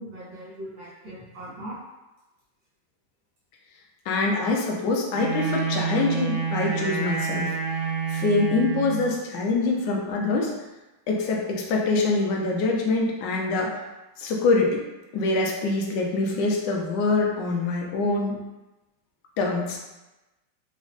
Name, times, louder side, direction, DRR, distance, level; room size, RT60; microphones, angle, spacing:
voice 1, 0.0-1.8, right 1 dB, 90° right, -8 dB, 2.2 m, -39 dB
voice 2, 4.1-7.6 8.1-10.5 11.1-13.7 14.2-14.8 15.1-18.4 19.4-19.8, left 3 dB, 75° left, -1 dB, 1.2 m, -24 dB
Wind instrument woodwind instrument, 5.1-9.1, right 5 dB, 55° right, 0.6 m, -28 dB
5.1 x 2.0 x 2.4 m, 1.1 s
omnidirectional pair, 2.1 m